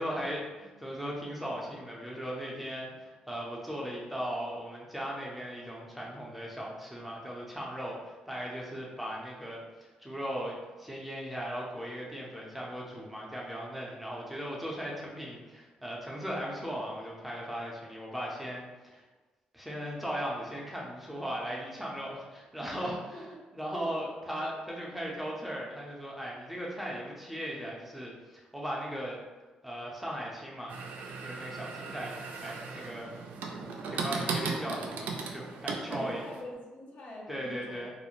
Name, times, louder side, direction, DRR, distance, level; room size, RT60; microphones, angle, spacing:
voice 1, 0.0-19.0 19.5-29.2 29.6-30.8 31.2-32.1 32.4-33.1 33.9-36.2 37.3-37.9, equal, 5° right, -4 dB, 0.5 m, -38 dB
sound 1, 30.7-36.4, right 4 dB, 85° right, 0.3 m, -37 dB
voice 2, 35.9-37.8, left 1 dB, 65° left, -4 dB, 0.7 m, -43 dB
2.4 x 2.0 x 3.0 m, 1.2 s
cardioid pair, 100°, 3 cm